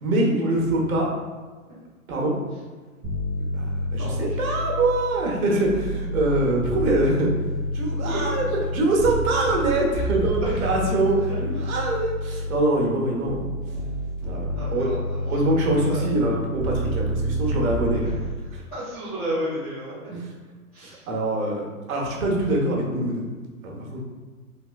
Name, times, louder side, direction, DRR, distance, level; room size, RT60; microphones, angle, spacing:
voice 1, 0.0-1.1 2.1-2.3 3.5-7.3 7.7-8.4 8.7-13.4 14.3-14.9 15.3-18.1 18.5-18.6 20.1-20.3 20.8-23.2 23.6-24.0, right 2 dB, 70° right, -1 dB, 1.1 m, -24 dB
sound 1, 3.0-5.2 5.6-12.8 13.3-18.3, equal, 25° right, 0.9 m, -29 dB
voice 2, 4.0-4.8 8.0-8.5 10.4-10.6 11.3-11.4 11.6-11.7 14.5-15.2 15.9-16.1 18.0-18.1 18.7-19.9 20.7-21.0, equal, 10° left, -16 dB, 0.4 m, -33 dB
3.8 x 2.7 x 2.2 m, 1.4 s
hypercardioid pair, 150°, 44 cm